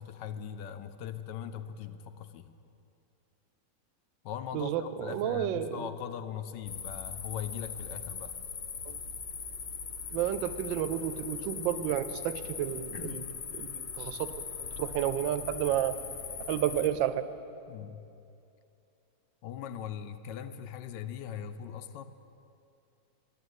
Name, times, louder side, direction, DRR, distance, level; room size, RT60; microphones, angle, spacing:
voice 1, 0.0-2.5 4.2-8.4 12.9-13.3 17.7-18.0 19.4-22.0, left 9 dB, 75° left, 10 dB, 1.2 m, -40 dB
voice 2, 4.5-5.9 8.9-9.0 10.1-13.2 13.6-14.3 14.6-16.0 16.5-17.3, right 11 dB, 85° right, 12 dB, 1.3 m, -31 dB
sound 1, 6.7-16.9, left 6 dB, 55° left, 1.1 m, -40 dB
10.0 x 10.0 x 8.0 m, 2.6 s
omnidirectional pair, 2.0 m